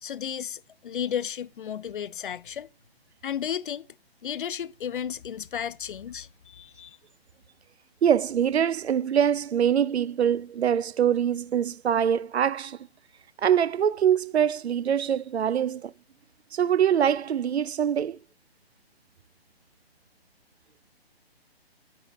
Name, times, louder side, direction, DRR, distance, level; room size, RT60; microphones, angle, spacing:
voice 1, 0.0-2.7 3.2-3.9 4.2-7.0, left 9 dB, 55° left, 0.5 m, -33 dB
voice 2, 8.0-12.8 13.4-15.9 16.5-18.2, right 9 dB, 85° right, 0.5 m, -24 dB
9.6 x 4.8 x 6.4 m
hypercardioid pair, 150°, 32 cm